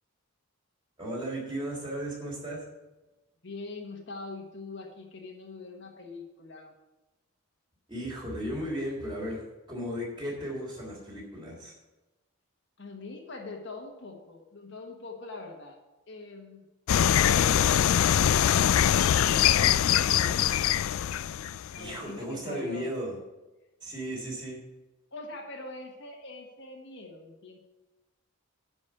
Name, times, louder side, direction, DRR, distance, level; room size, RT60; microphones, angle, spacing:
voice 1, 1.0-2.6 7.9-11.7 21.8-23.1 23.8-24.6, equal, 20° right, -3 dB, 3.4 m, -35 dB
voice 2, 3.4-6.7 12.8-15.8 16.1-16.6 21.7-22.9 25.1-27.6, left 3 dB, 50° left, 1 dB, 1.3 m, -43 dB
sound 1, 16.9-22.0, left 10 dB, 70° left, 0.3 m, -23 dB
10.0 x 5.3 x 7.8 m, 1.1 s
head